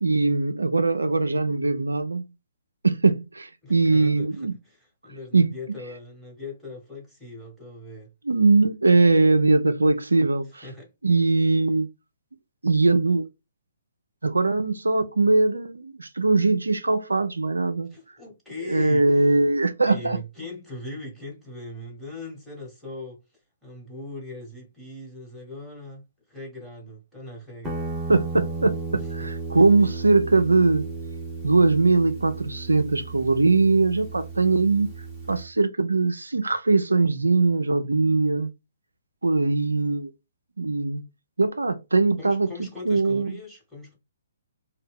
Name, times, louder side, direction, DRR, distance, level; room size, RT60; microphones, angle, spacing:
voice 1, 0.0-2.2 2.8-4.5 5.3-5.5 8.3-10.6 11.0-11.9 12.6-13.2 14.2-17.9 18.7-20.2 28.1-30.9 31.4-34.9 35.3-38.5 39.2-40.1 40.6-41.0 41.4-42.5 42.9-43.4, right 3 dB, 80° right, 0.4 m, -21 dB
voice 2, 3.6-8.1 10.5-10.9 17.9-19.4 19.8-23.2 23.6-27.9 29.2-29.9 42.2-44.0, left 2 dB, ahead, 1.3 m, -40 dB
Guitar, 27.6-35.5, right 4 dB, 15° right, 0.9 m, -34 dB
2.7 x 2.2 x 3.5 m
figure-of-eight pair, 130°, 0 cm